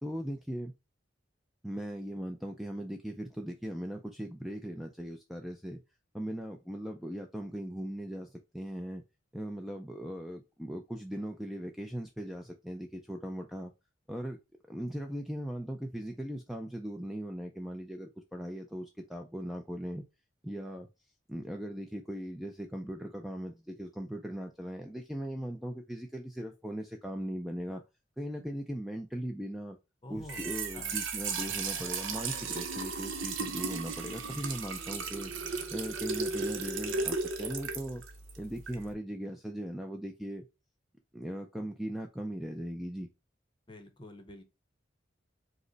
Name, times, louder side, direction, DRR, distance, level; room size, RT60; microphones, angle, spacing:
voice 1, 0.0-0.7 1.6-5.8 6.1-9.0 9.3-13.7 14.1-14.4 14.7-20.0 20.4-20.9 21.3-27.8 28.2-29.8 30.1-35.3 35.7-38.0 38.4-40.5 41.1-43.1, equal, ahead, 0.3 m, -39 dB
voice 2, 30.0-31.0 43.7-44.4, left 1 dB, 25° left, 0.7 m, -48 dB
Trickle dribble / Fill (with liquid), 30.1-38.9, right 4 dB, 85° right, 0.8 m, -35 dB
5.1 x 2.1 x 3.9 m
head